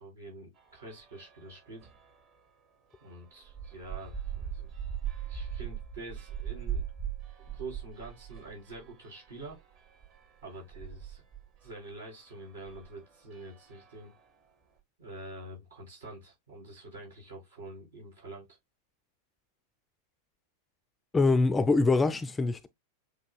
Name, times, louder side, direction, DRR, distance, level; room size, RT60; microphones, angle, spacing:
voice 1, 0.0-1.9 3.0-4.7 5.2-6.8 7.4-9.6 10.4-11.2 11.6-14.1 15.0-18.5, right 2 dB, 70° right, 3.7 m, -46 dB
sound 1, 0.6-2.4 2.9-14.4, right 9 dB, 40° right, 1.3 m, -41 dB
voice 2, 21.1-22.7, left 3 dB, 15° left, 0.4 m, -24 dB
7.8 x 2.8 x 2.2 m
figure-of-eight pair, 90°, 0 cm